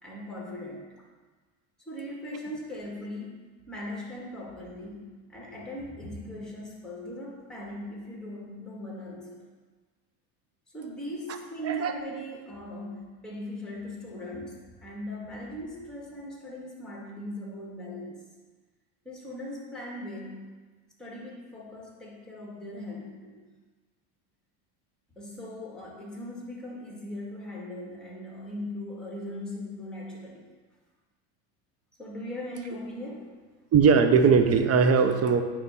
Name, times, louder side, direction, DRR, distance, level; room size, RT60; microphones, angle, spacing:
voice 1, 0.0-0.9 1.8-9.5 10.7-18.2 19.0-20.5 21.0-23.4 25.1-30.5 32.0-33.3, left 1 dB, ahead, -3 dB, 2.2 m, -39 dB
voice 2, 33.7-35.4, right 5 dB, 35° right, 8 dB, 0.7 m, -20 dB
9.3 x 3.3 x 5.6 m, 1.4 s
supercardioid pair, 100°, 44 cm